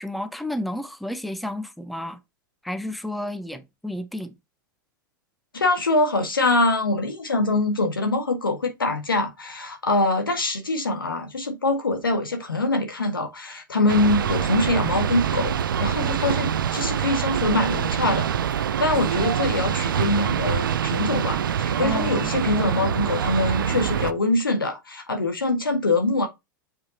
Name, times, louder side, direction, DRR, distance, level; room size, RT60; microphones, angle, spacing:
voice 1, 0.0-2.2 2.6-4.3 21.8-22.3, left 1 dB, ahead, 0.8 m, -31 dB
voice 2, 5.5-26.3, left 2 dB, 90° left, 1.6 m, -24 dB
sound 1, 13.9-24.1, right 8 dB, 75° right, 0.5 m, -25 dB
7.1 x 5.3 x 2.8 m
hypercardioid pair, 100°, 11 cm